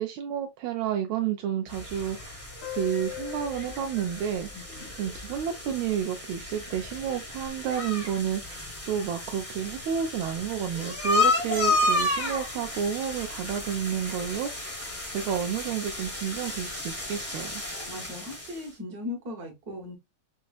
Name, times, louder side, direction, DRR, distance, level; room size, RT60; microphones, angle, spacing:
voice 1, 0.0-2.4 2.8-4.5 5.0-14.5 15.1-17.6, right 9 dB, 80° right, 1.4 m, -30 dB
sound 1, 1.7-18.7, left 2 dB, 15° left, 0.6 m, -32 dB
sound 2, 2.6-5.8, left 13 dB, 75° left, 1.3 m, -41 dB
voice 2, 4.5-4.9 17.7-20.0, left 2 dB, 50° right, 1.8 m, -38 dB
5.5 x 2.3 x 2.3 m
omnidirectional pair, 2.2 m